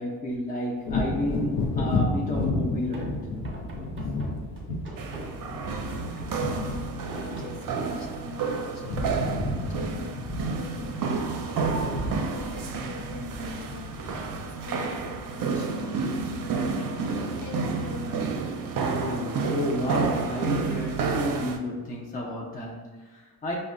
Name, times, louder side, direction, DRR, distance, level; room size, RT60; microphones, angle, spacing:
voice 1, 0.0-3.2 18.8-23.6, left 1 dB, 20° left, -2 dB, 0.4 m, -31 dB
Wind / Thunder, 0.8-8.4 8.7-15.9 16.3-16.5, left 2 dB, 85° left, 0.7 m, -32 dB
sound 1, 2.8-8.3, right 1 dB, 30° right, 0.8 m, -41 dB
sound 2, 5.0-21.6, right 4 dB, 55° right, 0.5 m, -30 dB
voice 2, 6.3-9.0 9.6-10.2 10.5-11.6 12.1-13.9 14.4-16.0 17.4-18.3, left 3 dB, 45° left, -1 dB, 0.8 m, -41 dB
5.1 x 2.2 x 2.4 m, 1.3 s
cardioid pair, 90°, 40 cm